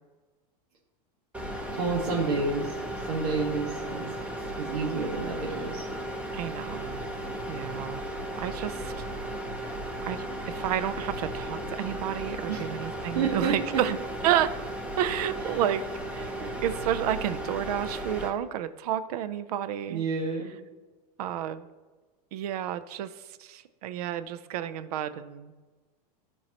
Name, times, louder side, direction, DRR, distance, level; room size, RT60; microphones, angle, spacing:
sound 1, 1.3-18.3, right 1 dB, 5° right, 0.7 m, -35 dB
voice 1, 1.8-2.7 3.1-4.1 4.6-5.8 12.5-12.7 13.1-13.5 19.9-20.5, right 4 dB, 90° right, -4 dB, 1.6 m, -29 dB
voice 2, 6.3-7.0 7.5-8.1 8.4-9.0 10.0-14.0 14.2-14.6 15.0-15.8 16.1-20.0 21.2-21.7 22.3-25.5, right 11 dB, 70° right, 12 dB, 0.5 m, -31 dB
13.5 x 4.5 x 2.9 m, 1.3 s
supercardioid pair, 160°, 20 cm